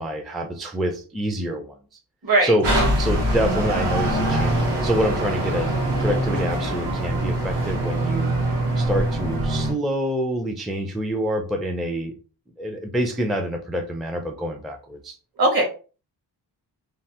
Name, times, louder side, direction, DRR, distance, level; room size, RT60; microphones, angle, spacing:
voice 1, 0.0-1.8 2.4-2.7 3.0-8.3 8.8-12.1 12.6-15.2, equal, ahead, 4 dB, 0.4 m, -26 dB
voice 2, 2.2-2.5 15.4-15.6, right 2 dB, 55° right, 1 dB, 1.4 m, -18 dB
sound 1, 2.6-9.7, right 1 dB, 75° right, 1.3 m, -23 dB
3.1 x 2.0 x 2.8 m, 0.36 s
cardioid pair, 90°, 42 cm